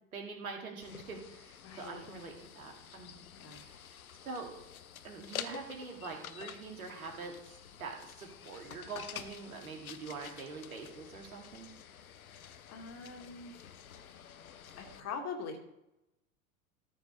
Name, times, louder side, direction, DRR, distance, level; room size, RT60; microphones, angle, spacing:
voice 1, 0.1-3.2 3.6-3.9 4.2-4.5 5.0-11.7, right 4 dB, 75° right, 1 dB, 2.6 m, -44 dB
sound 1, 0.8-15.0, left 8 dB, 75° left, 0.8 m, -49 dB
voice 2, 1.6-2.0 3.3-3.6 12.3-13.6 14.8-15.6, left 5 dB, 35° left, 4 dB, 2.2 m, -43 dB
13.5 x 5.2 x 5.3 m, 0.90 s
figure-of-eight pair, 85°, 43 cm